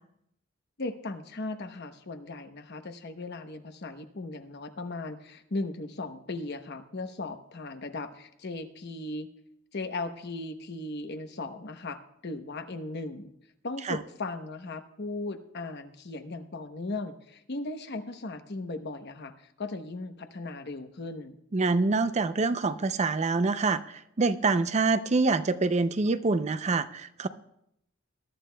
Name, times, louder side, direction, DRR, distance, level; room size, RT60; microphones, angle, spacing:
voice 1, 0.8-9.3 9.7-13.3 13.6-21.3, left 2 dB, 55° left, 8 dB, 0.9 m, -37 dB
voice 2, 21.5-27.3, right 3 dB, 35° right, 12 dB, 0.5 m, -26 dB
21.5 x 11.5 x 2.2 m, 0.76 s
head